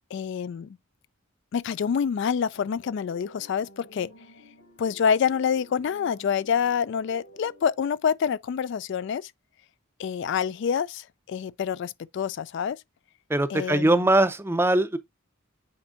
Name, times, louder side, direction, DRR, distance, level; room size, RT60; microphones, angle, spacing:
voice 1, 0.1-0.7 1.5-4.1 4.8-9.3 10.0-12.8 13.5-14.0, left 7 dB, 60° left, 0.3 m, -27 dB
sound 1, 2.5-7.9, left 1 dB, 90° left, 4.9 m, -51 dB
voice 2, 13.3-15.0, right 1 dB, 10° right, 0.5 m, -21 dB
8.7 x 4.4 x 2.5 m
head